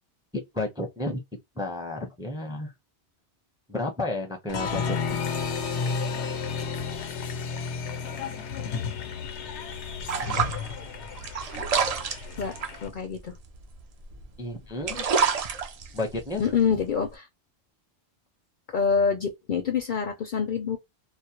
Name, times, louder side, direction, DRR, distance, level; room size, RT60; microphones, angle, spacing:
voice 1, 0.3-1.2 1.6-2.7 3.7-5.2 14.4-15.0 15.9-16.4, left 2 dB, 5° right, 0.5 m, -32 dB
Applause, 4.5-12.9, left 5 dB, 90° left, 0.9 m, -32 dB
sound 1, 9.3-14.3 14.7-17.1, right 6 dB, 60° right, 0.4 m, -29 dB
voice 2, 12.8-13.4 16.4-17.3 18.7-20.8, left 6 dB, 60° left, 0.6 m, -26 dB
2.3 x 2.0 x 2.8 m
omnidirectional pair, 1.1 m